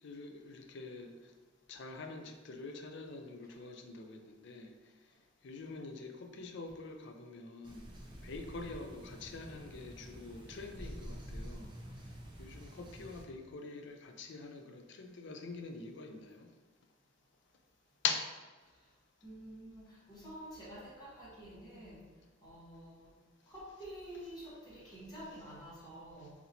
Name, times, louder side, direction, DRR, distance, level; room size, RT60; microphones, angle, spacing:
voice 1, 0.0-1.1 1.7-4.7 5.4-7.9 8.2-11.7 12.4-16.5 18.0-18.3, left 4 dB, 60° left, 4 dB, 0.4 m, -44 dB
sound 1, 7.6-13.2, equal, 25° right, 0.5 m, -48 dB
voice 2, 19.2-22.0 22.4-23.1 23.5-26.3, right 1 dB, 20° left, -8 dB, 1.1 m, -49 dB
4.0 x 2.8 x 2.8 m, 1.3 s
head